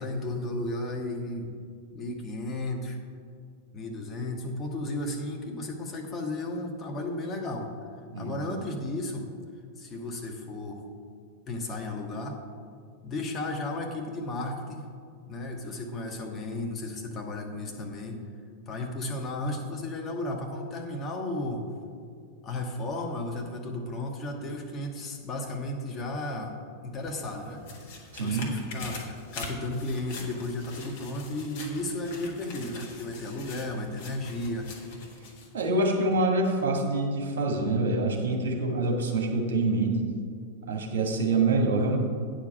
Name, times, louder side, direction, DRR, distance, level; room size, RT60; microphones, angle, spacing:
voice 1, 0.0-1.5 1.9-3.0 3.7-7.7 8.2-9.3 9.8-10.8 11.5-12.4 13.0-14.8 15.3-18.2 18.7-21.7 22.4-27.6 28.2-34.7, left 2 dB, 25° left, 0 dB, 1.5 m, -34 dB
sound 1, 27.0-35.7 36.1-36.2, left 3 dB, 50° left, 1.7 m, -44 dB
voice 2, 28.1-28.4 35.5-40.0 40.7-42.0, right 2 dB, 60° right, 1 dB, 1.7 m, -26 dB
9.1 x 5.0 x 7.0 m, 2.2 s
figure-of-eight pair, 90°, 0 cm